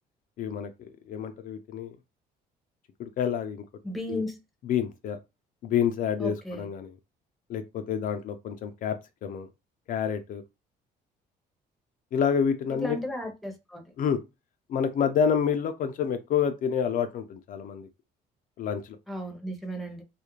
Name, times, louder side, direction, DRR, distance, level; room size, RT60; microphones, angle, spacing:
voice 1, 0.4-2.0 3.0-3.6 4.1-4.2 4.6-5.2 5.6-6.9 7.5-9.5 9.9-10.4 12.1-13.0 14.0-14.2 14.7-17.9 18.6-19.0, left 7 dB, 55° left, 0.4 m, -28 dB
voice 2, 3.8-4.4 6.2-6.7 12.8-13.8 19.1-20.0, left 1 dB, ahead, 0.7 m, -34 dB
2.4 x 2.0 x 3.0 m
cardioid pair, 110°, 17 cm